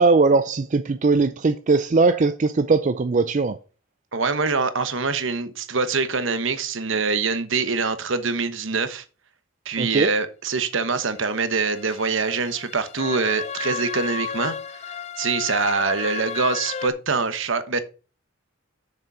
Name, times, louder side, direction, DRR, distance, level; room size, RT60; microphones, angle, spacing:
voice 1, 0.0-3.6 9.8-10.1, right 3 dB, 35° right, 0.4 m, -19 dB
voice 2, 4.1-9.0 9.6-14.5 15.2-17.8, right 4 dB, 65° right, 1.1 m, -24 dB
sound 1, 11.2-16.9, left 7 dB, 30° left, 0.5 m, -33 dB
6.9 x 6.7 x 4.8 m
head